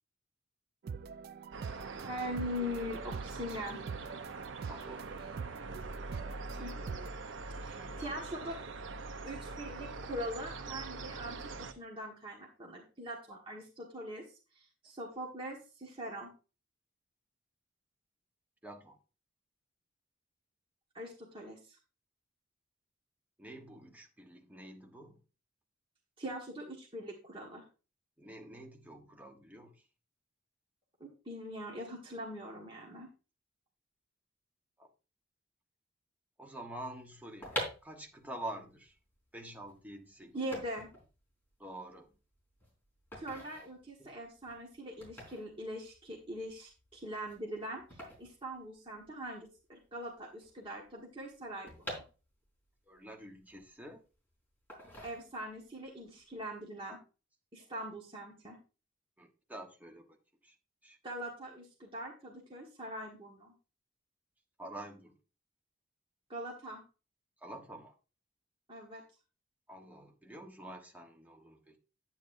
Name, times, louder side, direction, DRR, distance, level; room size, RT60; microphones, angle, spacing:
sound 1, 0.8-7.1, right 5 dB, 50° right, 0.3 m, -44 dB
sound 2, 1.5-11.7, right 3 dB, 70° right, 0.7 m, -43 dB
voice 1, 1.9-3.8 6.5-6.8 7.6-8.6 9.2-14.2 14.5-16.3 20.9-21.8 26.2-27.6 31.0-33.1 40.3-40.9 43.2-52.0 55.0-57.0 57.5-58.6 61.0-63.5 66.3-66.8 68.7-69.0, equal, 25° right, 1.6 m, -42 dB
voice 2, 4.7-5.2 7.5-8.3 18.6-19.0 23.4-25.2 28.2-29.8 34.8-34.9 36.4-38.9 39.3-40.4 41.6-42.1 44.0-44.1 52.9-54.0 56.9-57.0 59.2-60.2 60.4-60.5 60.8-61.0 64.6-65.2 67.4-67.9 69.7-71.8, right 1 dB, 10° right, 1.2 m, -48 dB
sound 3, 37.2-49.3 49.6-49.7 49.8-52.7 53.1-54.1 54.7-55.7 56.0-56.3, left 1 dB, 10° left, 3.8 m, -46 dB
9.2 x 9.1 x 2.6 m
head